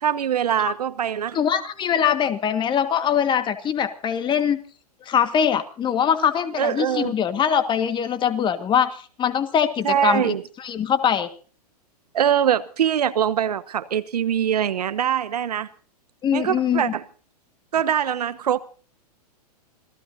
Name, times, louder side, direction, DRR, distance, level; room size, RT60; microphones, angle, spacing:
voice 1, 0.0-1.4 6.6-7.1 9.8-10.4 12.1-15.7 16.3-17.0 17.7-18.6, right 9 dB, 70° right, 1.1 m, -23 dB
voice 2, 1.3-4.6 5.1-11.3 16.2-16.9, left 8 dB, 20° left, 1.7 m, -22 dB
27.0 x 17.5 x 2.8 m
hypercardioid pair, 110°, 21 cm